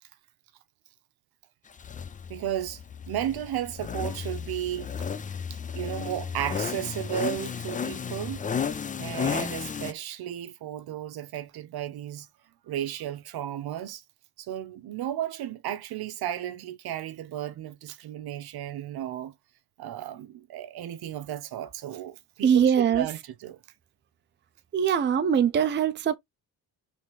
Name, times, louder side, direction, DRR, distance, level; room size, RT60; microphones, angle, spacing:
sound 1, 1.8-9.9, left 6 dB, 20° left, 0.4 m, -33 dB
voice 1, 2.3-5.1 5.7-8.4 9.0-12.3 12.6-14.0 14.4-19.3 19.8-23.6, right 11 dB, 65° right, 0.8 m, -34 dB
voice 2, 22.4-23.1 24.7-26.2, right 8 dB, 25° right, 0.5 m, -22 dB
4.0 x 3.5 x 3.2 m
cardioid pair, 80°, 41 cm